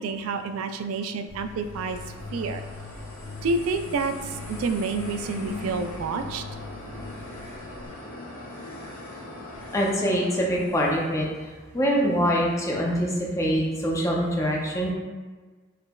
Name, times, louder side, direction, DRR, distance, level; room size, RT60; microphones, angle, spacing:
voice 1, 0.0-2.0 2.3-2.6 3.4-6.4, right 4 dB, 90° right, 9 dB, 0.3 m, -29 dB
sound 1, 1.3-11.1, left 1 dB, 85° left, 1.1 m, -41 dB
sound 2, 1.3-7.9, left 3 dB, 35° left, 1.1 m, -42 dB
voice 2, 9.7-14.9, equal, 15° left, -3 dB, 0.5 m, -24 dB
5.0 x 3.1 x 2.3 m, 1.3 s
head